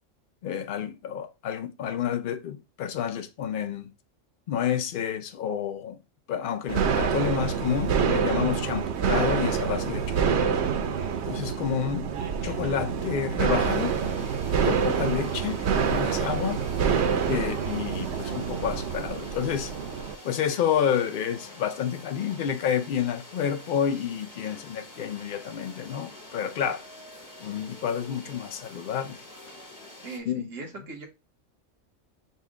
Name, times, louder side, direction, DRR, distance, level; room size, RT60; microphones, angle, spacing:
voice 1, 0.4-3.9 4.5-6.0 6.3-10.5 11.3-12.1 12.4-13.9 14.6-16.6 17.3-19.7 20.2-26.8 27.4-29.2 30.3-30.5, left 8 dB, 65° left, 0.5 m, -29 dB
sound 1, 6.7-20.1, right 6 dB, 65° right, 0.8 m, -27 dB
sound 2, 13.6-30.2, left 1 dB, 20° left, 0.8 m, -47 dB
voice 2, 30.0-31.1, right 3 dB, 90° right, 1.5 m, -39 dB
5.5 x 2.2 x 3.6 m
omnidirectional pair, 1.3 m